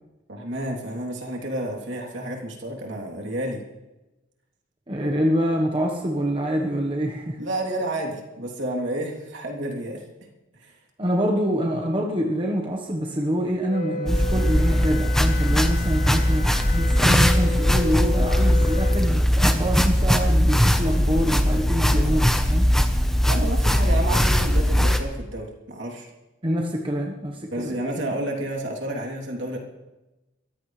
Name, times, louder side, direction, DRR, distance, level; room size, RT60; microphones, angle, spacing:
voice 1, 0.3-3.6 7.4-10.0 10.6-10.7 21.8-22.2 23.3-26.1 27.5-29.6, right 1 dB, 65° right, -1 dB, 3.2 m, -30 dB
voice 2, 4.9-7.4 11.0-22.7 26.4-27.7, equal, 25° right, 0 dB, 1.2 m, -26 dB
Wind instrument woodwind instrument, 13.7-19.2, left 5 dB, 35° left, 0.9 m, -34 dB
sound 1, 14.1-25.0, equal, ahead, 0.9 m, -20 dB
23.0 x 15.0 x 3.3 m, 1.0 s
head